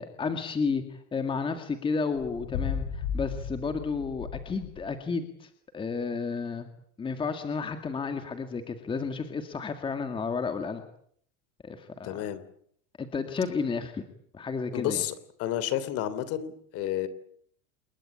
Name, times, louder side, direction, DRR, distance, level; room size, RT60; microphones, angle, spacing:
voice 1, 0.0-6.7 7.0-10.8 11.6-12.2 13.0-14.0 14.3-15.0, left 5 dB, 15° left, 7 dB, 2.1 m, -32 dB
sound 1, 2.2-5.0, left 6 dB, 75° left, 7.4 m, -35 dB
voice 2, 12.0-12.4 14.7-15.1 15.4-17.1, left 11 dB, 40° left, 15 dB, 3.2 m, -30 dB
28.5 x 22.0 x 8.6 m, 0.65 s
supercardioid pair, 165°, 37 cm